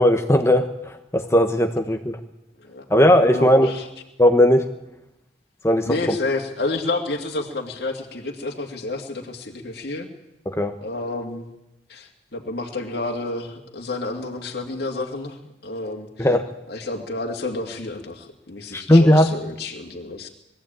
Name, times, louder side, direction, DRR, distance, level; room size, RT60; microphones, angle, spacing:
voice 1, 0.0-2.2 2.9-3.7 4.2-4.6 5.6-5.9 10.5-10.7 16.2-16.4 18.7-19.3, left 1 dB, 15° left, 6 dB, 1.1 m, -17 dB
voice 2, 3.2-3.9 5.9-10.1 10.8-11.5 11.9-16.3 16.7-20.3, left 2 dB, 60° left, 0 dB, 2.3 m, -30 dB
21.5 x 15.0 x 8.9 m, 0.90 s
head